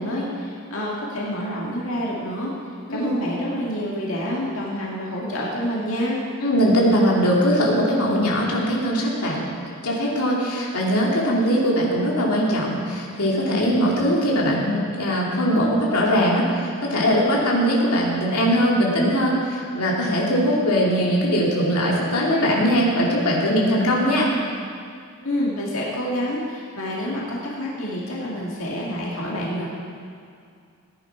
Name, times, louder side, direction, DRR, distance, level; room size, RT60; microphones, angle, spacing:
voice 1, 0.0-2.5 2.9-6.2 25.2-29.7, equal, 60° left, -5 dB, 2.2 m, -28 dB
voice 2, 6.4-24.3, equal, 90° left, -4 dB, 2.5 m, -21 dB
15.5 x 10.0 x 4.6 m, 2.3 s
head